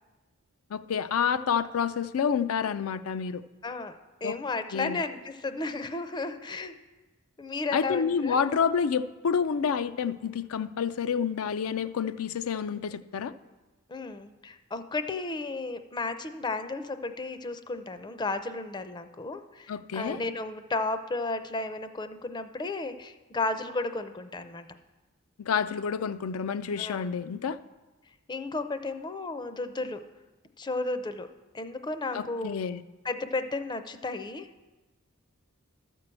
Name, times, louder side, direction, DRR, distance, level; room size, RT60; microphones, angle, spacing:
voice 1, 0.7-3.4 4.2-4.4 4.7-5.0 7.7-13.3 19.7-20.2 25.4-27.6 32.1-32.8, left 6 dB, 85° left, 12 dB, 0.4 m, -28 dB
voice 2, 3.6-3.9 4.2-6.7 7.4-8.4 13.9-24.7 26.8-27.0 28.3-30.0 30.6-31.3 31.5-32.6 33.0-34.5, left 3 dB, 20° left, 9 dB, 0.5 m, -33 dB
12.5 x 4.6 x 7.5 m, 1.2 s
head